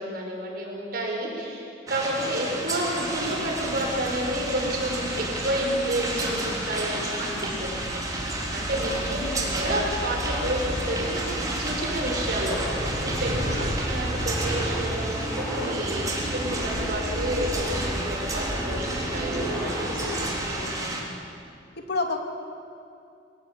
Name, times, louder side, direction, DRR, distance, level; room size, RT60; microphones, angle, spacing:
voice 1, 0.0-20.1, right 1 dB, 55° right, -1 dB, 5.5 m, -30 dB
sound 1, 1.9-21.0, right 2 dB, 20° right, 3.5 m, -32 dB
sound 2, 2.2-20.4, equal, 5° left, 6.5 m, -33 dB
voice 2, 5.8-6.6 8.8-9.6 13.4-14.0 20.1-20.9 21.8-22.2, left 3 dB, 65° left, 3 dB, 2.4 m, -34 dB
23.5 x 17.0 x 8.5 m, 2.5 s
head